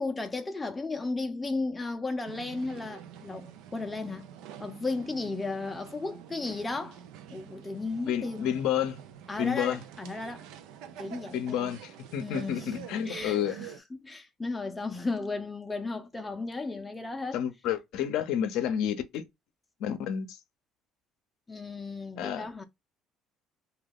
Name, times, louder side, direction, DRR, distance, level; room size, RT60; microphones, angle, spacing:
voice 1, 0.0-4.3 4.6-7.0 7.3-8.5 9.3-10.4 11.0-11.7 12.2-13.7 14.0-17.4 21.5-22.7, left 3 dB, 20° left, 0.5 m, -35 dB
sound 1, 2.3-13.8, right 9 dB, 75° right, 0.4 m, -47 dB
voice 2, 8.1-9.0 9.4-9.8 11.3-13.6 17.3-19.2 19.8-20.4 22.2-22.5, left 9 dB, 70° left, 0.5 m, -30 dB
2.3 x 2.3 x 3.5 m
supercardioid pair, 70°, 0 cm